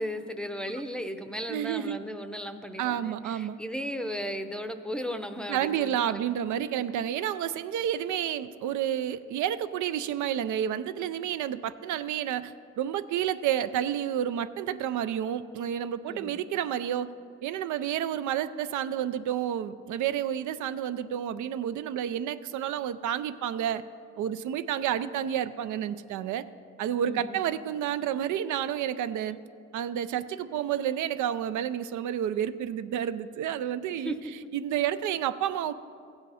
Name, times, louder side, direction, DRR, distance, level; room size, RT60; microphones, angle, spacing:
voice 1, 0.0-6.3 6.5-6.7 16.1-16.4 27.1-27.4 34.0-34.3, equal, 5° left, 8 dB, 0.6 m, -36 dB
voice 2, 1.5-2.0 2.8-3.6 5.5-17.1 17.4-23.8 24.2-26.4 26.8-29.4 29.7-34.1 34.5-35.7, right 10 dB, 75° right, 13 dB, 0.5 m, -30 dB
15.5 x 8.0 x 4.2 m, 2.3 s
cardioid pair, 90°, 30 cm